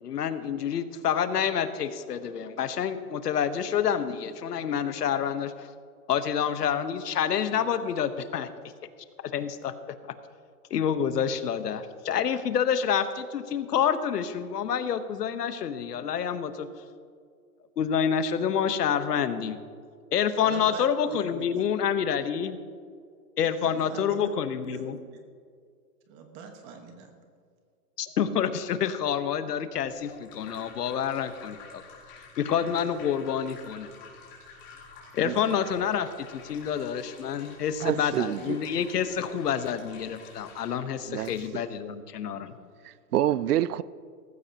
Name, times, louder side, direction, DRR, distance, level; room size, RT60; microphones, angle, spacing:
voice 1, 0.0-5.7 6.1-8.5 9.3-9.7 10.7-16.7 17.8-19.6 20.1-22.6 23.4-25.0 28.0-31.8 32.1-33.9 35.1-42.5, left 8 dB, 80° left, 1.2 m, -28 dB
voice 2, 20.4-21.6 23.6-24.3 24.6-25.2 26.1-27.1, right 5 dB, 20° right, 1.3 m, -42 dB
sound 1, 29.8-41.5, left 5 dB, 30° left, 3.7 m, -50 dB
voice 3, 37.8-38.7 41.0-41.7 42.8-43.8, right 12 dB, 75° right, 0.6 m, -28 dB
18.0 x 15.0 x 2.9 m
hypercardioid pair, 160°, 47 cm